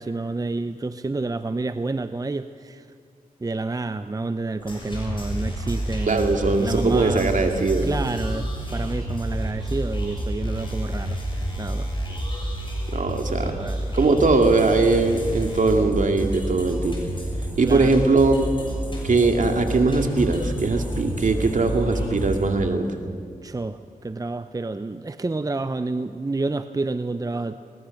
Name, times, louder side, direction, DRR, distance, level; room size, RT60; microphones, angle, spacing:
voice 1, 0.0-2.9 3.4-6.3 6.6-7.4 7.8-11.2 11.6-11.9 13.4-14.0 17.6-18.0 23.4-27.6, right 3 dB, 25° right, 11 dB, 0.6 m, -29 dB
sound 1, 4.6-22.4, right 1 dB, 35° left, 6.5 m, -29 dB
voice 2, 6.1-7.9 12.9-13.5 13.9-16.9 17.6-18.5 19.0-22.9, right 3 dB, 60° right, 4 dB, 2.3 m, -20 dB
21.5 x 18.5 x 6.5 m, 2.2 s
cardioid pair, 50°, 15 cm